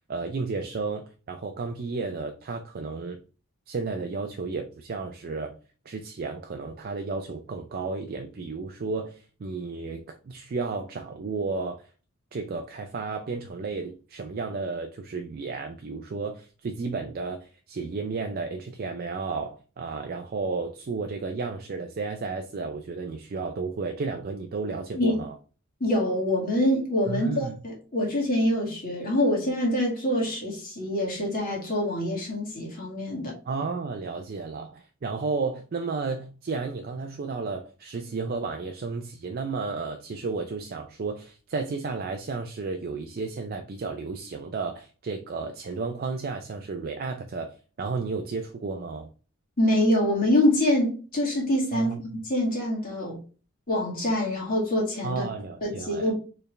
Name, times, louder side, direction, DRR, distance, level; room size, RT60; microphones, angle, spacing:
voice 1, 0.1-3.2 3.7-5.5 5.9-11.8 12.3-25.3 27.1-27.5 33.5-49.1 51.7-52.0 55.0-56.1, right 4 dB, 45° right, 0.4 m, -33 dB
voice 2, 25.8-33.4 49.6-53.2 53.7-55.3 55.6-56.1, left 1 dB, 40° left, 1.9 m, -25 dB
4.5 x 3.3 x 3.2 m
head